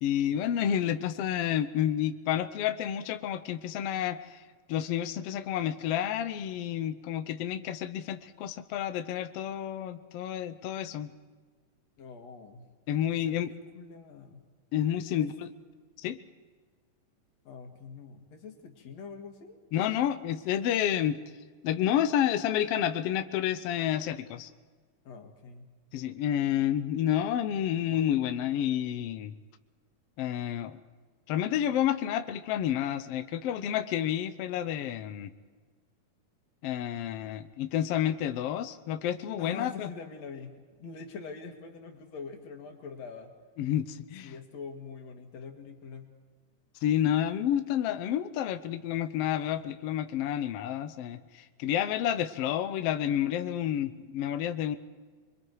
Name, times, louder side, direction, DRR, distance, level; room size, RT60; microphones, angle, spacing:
voice 1, 0.0-4.4 4.7-11.1 12.9-13.5 14.7-15.5 16.0-16.2 19.7-21.2 21.6-24.5 25.9-29.3 30.2-30.8 31.3-35.3 36.6-39.9 43.6-44.4 46.8-54.8, left 10 dB, 85° left, 9 dB, 1.3 m, -30 dB
voice 2, 12.0-12.7 13.1-14.4 15.2-15.3 17.4-19.6 25.0-25.7 39.4-43.3 44.2-46.1, left 5 dB, 55° left, 4 dB, 2.9 m, -44 dB
27.5 x 22.5 x 4.8 m, 1.5 s
omnidirectional pair, 3.8 m